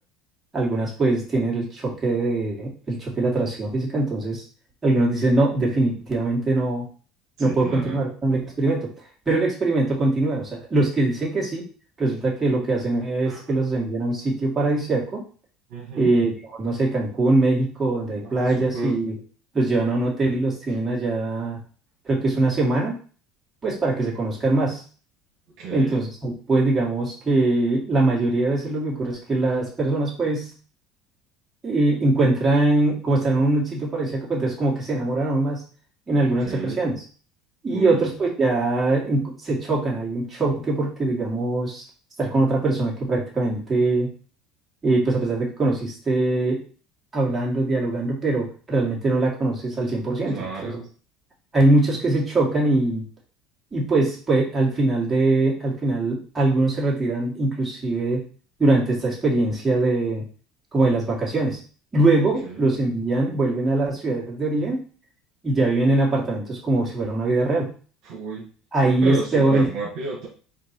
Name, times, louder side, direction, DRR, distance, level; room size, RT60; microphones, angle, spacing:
voice 1, 0.5-4.4 4.8-6.8 7.4-8.9 9.3-11.7 12.0-15.2 16.0-16.3 16.6-19.1 19.5-21.6 22.1-22.9 23.6-24.8 25.7-30.5 31.6-35.6 36.1-36.9 37.6-41.8 42.2-44.1 44.8-46.6 47.1-50.8 51.5-53.0 53.7-58.2 58.6-60.2 60.7-61.6 61.9-64.8 65.4-67.7 68.7-69.7, right 2 dB, 20° right, -4 dB, 2.1 m, -22 dB
voice 2, 7.4-8.0 13.2-13.4 15.7-16.1 18.2-19.0 25.6-26.0 36.1-36.8 37.7-38.1 50.3-50.9 62.1-62.6 68.0-68.5 68.8-70.3, right 4 dB, 65° right, -3 dB, 1.5 m, -33 dB
4.4 x 2.7 x 4.5 m, 0.40 s
supercardioid pair, 110°, 0 cm